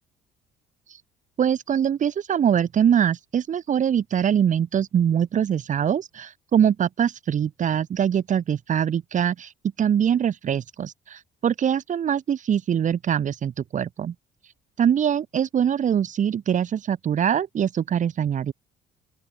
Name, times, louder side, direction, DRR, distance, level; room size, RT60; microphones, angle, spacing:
voice 1, 1.4-9.5 9.8-14.1 14.8-18.5, right 8 dB, 50° right, 4.4 m, -23 dB
open air
cardioid pair, 110°, 17 cm